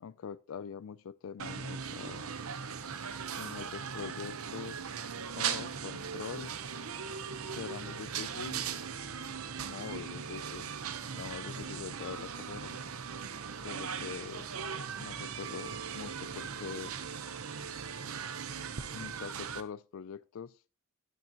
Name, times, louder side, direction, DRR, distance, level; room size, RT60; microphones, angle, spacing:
voice 1, 0.0-2.3 3.3-4.9 5.4-6.5 7.5-8.7 9.6-10.7 11.1-12.8 13.6-14.5 15.0-17.0 18.9-20.6, left 7 dB, 70° left, 0.4 m, -43 dB
sound 1, 1.4-19.6, right 6 dB, 80° right, 0.9 m, -39 dB
11.5 x 10.5 x 2.9 m
head